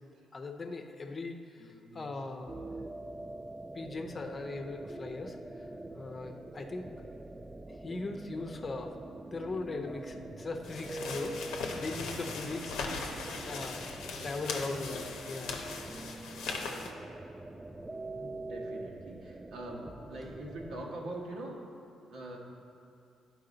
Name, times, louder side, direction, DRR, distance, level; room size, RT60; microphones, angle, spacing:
voice 1, 0.3-1.4 1.9-2.5 3.7-5.4 6.0-6.8 7.8-8.9 9.3-13.0 13.4-13.8 14.2-15.6, left 3 dB, 40° left, 4 dB, 0.7 m, -39 dB
voice 2, 1.6-2.1 5.7-5.9 14.2-15.0 18.1-21.6 22.1-22.4, right 1 dB, 80° right, -2 dB, 1.3 m, -44 dB
sound 1, 2.5-21.0, right 2 dB, 20° right, 0.4 m, -44 dB
sound 2, 10.6-16.9, left 4 dB, 80° left, 0.7 m, -39 dB
10.5 x 4.8 x 3.9 m, 2.5 s
supercardioid pair, 60°, 0 cm